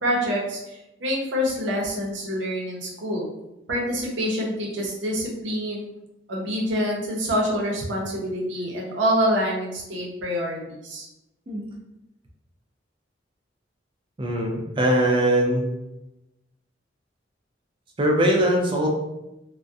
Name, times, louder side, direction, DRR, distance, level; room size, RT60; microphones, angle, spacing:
voice 1, 0.0-3.2 3.7-5.9 6.3-11.1, equal, 75° right, -2 dB, 0.7 m, -26 dB
voice 2, 14.2-15.6 18.0-18.9, right 1 dB, 25° right, 0 dB, 0.4 m, -21 dB
2.3 x 2.1 x 2.6 m, 0.92 s
head